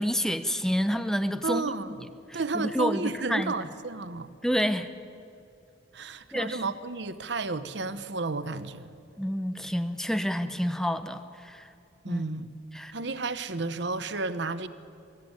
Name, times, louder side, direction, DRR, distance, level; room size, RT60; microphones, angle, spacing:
voice 1, 0.0-1.7 2.3-3.5 4.4-4.9 6.3-6.6 9.2-11.7 12.1-12.2 12.7-12.9, equal, 5° left, 0.7 m, -29 dB
voice 2, 1.4-2.1 2.3-4.3 5.9-8.9 12.0-12.5 12.9-14.7, right 3 dB, 65° right, 1.0 m, -32 dB
23.0 x 14.5 x 9.7 m
head